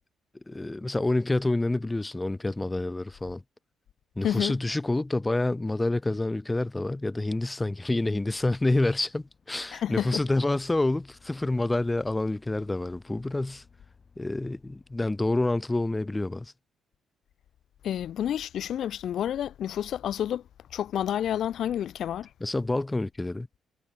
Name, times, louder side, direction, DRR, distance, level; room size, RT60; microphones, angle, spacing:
voice 1, 0.5-3.4 4.2-13.6 14.2-16.5 22.4-23.5, left 2 dB, 15° left, 0.4 m, -28 dB
voice 2, 4.2-4.6 9.7-10.2 17.8-20.4 20.7-22.3, left 10 dB, 70° left, 0.5 m, -29 dB
sound 1, 7.9-15.4, left 5 dB, 40° left, 3.5 m, -61 dB
cardioid pair, 90°, 0 cm